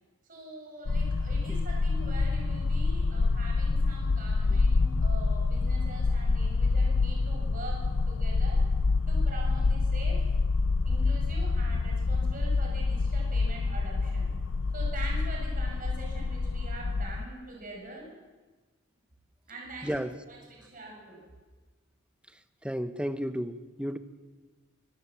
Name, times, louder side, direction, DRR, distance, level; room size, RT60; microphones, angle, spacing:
voice 1, 0.2-8.7 9.1-10.3 10.8-14.3 14.7-18.1 19.5-19.9 20.3-21.2, right 2 dB, 40° right, -1 dB, 6.8 m, -44 dB
sound 1, 0.9-17.3, left 3 dB, 85° left, 0.6 m, -27 dB
voice 2, 19.8-20.1 22.6-24.0, equal, 5° right, 10 dB, 1.0 m, -32 dB
25.0 x 16.0 x 7.5 m, 1.3 s
head